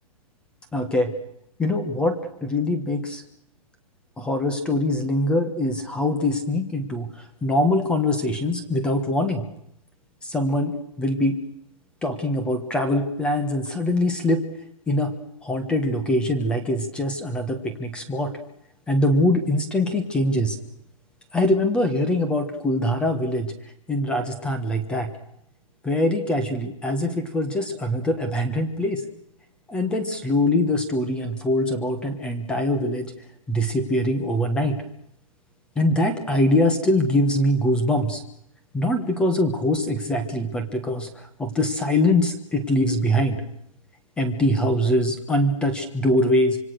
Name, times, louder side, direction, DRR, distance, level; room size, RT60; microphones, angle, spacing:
voice 1, 0.7-1.1 1.6-3.2 4.2-7.1 7.4-9.4 10.2-11.4 12.0-14.4 14.9-15.1 15.4-18.3 18.9-20.6 21.3-23.5 23.9-25.1 25.8-29.0 29.7-33.1 33.5-34.8 35.7-38.2 38.7-43.4 44.2-46.6, left 1 dB, 5° left, 8 dB, 1.2 m, -23 dB
26.0 x 24.5 x 6.5 m, 0.75 s
hypercardioid pair, 175°, 19 cm